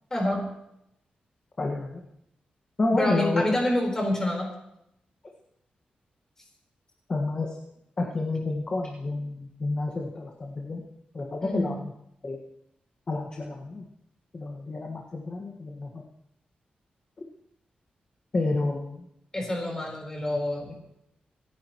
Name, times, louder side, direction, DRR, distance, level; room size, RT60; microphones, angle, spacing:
voice 1, 0.1-0.4 2.9-4.5 11.4-11.6 19.3-20.7, left 1 dB, 20° left, 0 dB, 4.3 m, -27 dB
voice 2, 1.6-2.0 2.8-3.4 7.1-7.5 8.0-10.8 11.1-11.9 12.2-12.4 13.1-13.8 14.3-16.0 18.3-19.1, left 2 dB, 35° left, 0 dB, 1.7 m, -29 dB
27.5 x 10.5 x 3.1 m, 0.79 s
wide cardioid pair, 130°, 3 cm